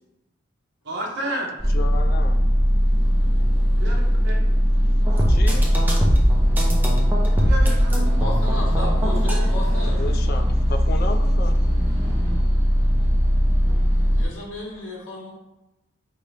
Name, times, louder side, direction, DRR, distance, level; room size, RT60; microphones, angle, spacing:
voice 1, 0.8-1.5 3.8-4.3 7.4-8.2, right 1 dB, 55° right, -1 dB, 0.9 m, -31 dB
sound 1, 1.6-14.2, equal, 15° left, 1.3 m, -19 dB
voice 2, 1.7-2.4 5.3-5.7 9.8-11.6, left 3 dB, 50° left, 6 dB, 0.3 m, -33 dB
Futuristic Rhythmic Game Ambience, 5.1-9.5, equal, 10° right, 0.6 m, -24 dB
voice 3, 8.2-10.0 14.0-15.3, left 1 dB, 65° left, -4 dB, 1.0 m, -33 dB
4.6 x 2.7 x 3.2 m, 0.95 s
head